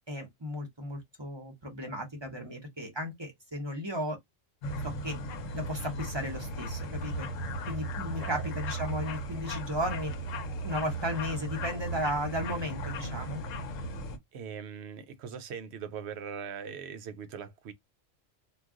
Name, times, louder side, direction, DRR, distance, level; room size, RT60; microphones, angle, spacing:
voice 1, 0.1-4.2 4.8-5.2 5.5-7.3 7.7-10.1 10.6-13.4, equal, 25° right, 0.6 m, -35 dB
sound 1, 4.6-14.2, right 1 dB, 80° left, 1.0 m, -36 dB
voice 2, 8.2-8.5 13.9-14.0 14.3-17.7, right 7 dB, 65° right, 0.8 m, -41 dB
2.3 x 2.2 x 3.5 m
omnidirectional pair, 1.3 m